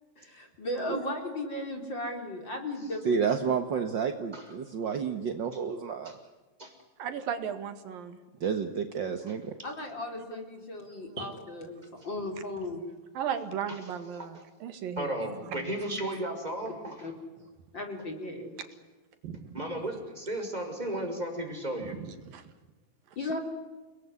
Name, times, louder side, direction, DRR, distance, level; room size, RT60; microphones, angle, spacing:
voice 1, 0.2-3.3 9.6-11.8 12.0-12.8 17.0-17.1 17.7-18.6 23.2-23.4, left 1 dB, 30° left, 4 dB, 4.4 m, -36 dB
voice 2, 3.0-6.1 8.4-9.5, right 6 dB, 55° right, 7 dB, 1.3 m, -30 dB
voice 3, 7.0-8.2 11.2-11.3 13.2-15.1 15.5-15.6 19.2-19.6 21.9-22.4, right 8 dB, 80° right, 9 dB, 3.6 m, -36 dB
voice 4, 15.0-17.1 19.5-22.0, right 1 dB, 10° right, 3 dB, 5.8 m, -35 dB
30.0 x 20.0 x 9.8 m, 1.3 s
omnidirectional pair, 4.0 m